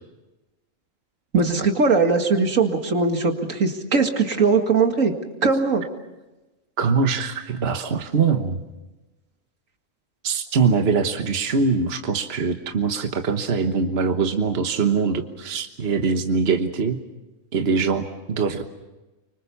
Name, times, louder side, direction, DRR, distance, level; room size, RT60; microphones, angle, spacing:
voice 1, 1.3-5.1 5.4-5.8, right 4 dB, 80° right, 5 dB, 2.5 m, -20 dB
voice 2, 6.8-8.6 10.2-17.0 17.5-18.6, right 5 dB, 50° right, 6 dB, 1.5 m, -22 dB
25.5 x 24.5 x 7.1 m, 1.1 s
omnidirectional pair, 1.4 m